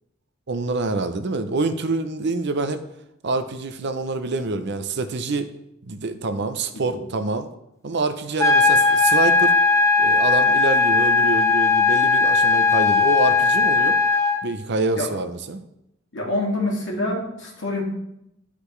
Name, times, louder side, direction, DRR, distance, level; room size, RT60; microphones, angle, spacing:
voice 1, 0.5-2.8 3.2-5.5 5.8-7.5 7.8-9.6 10.0-14.0 14.4-15.6, right 3 dB, 60° right, 9 dB, 0.6 m, -26 dB
sound 1, 8.4-14.4, left 4 dB, 15° left, 0.7 m, -18 dB
voice 2, 16.1-17.8, left 1 dB, 65° left, -2 dB, 2.4 m, -26 dB
12.0 x 5.0 x 3.3 m, 0.83 s
head